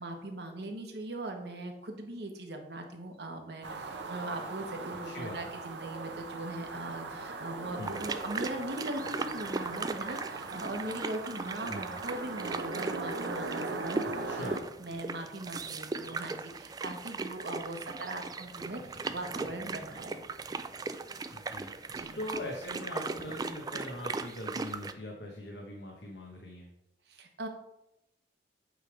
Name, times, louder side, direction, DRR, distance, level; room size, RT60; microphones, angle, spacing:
voice 1, 0.0-20.2 21.9-22.2 27.1-27.5, right 1 dB, 65° right, 4 dB, 1.1 m, -40 dB
sound 1, 3.6-14.6, right 3 dB, 85° right, 0.8 m, -39 dB
voice 2, 5.0-5.6 7.8-8.1 11.7-12.0 14.2-14.7 21.3-26.7, left 1 dB, 75° left, 0 dB, 1.1 m, -42 dB
sound 2, 7.8-24.9, right 3 dB, 20° right, 0.3 m, -38 dB
8.2 x 3.4 x 4.8 m, 0.89 s
head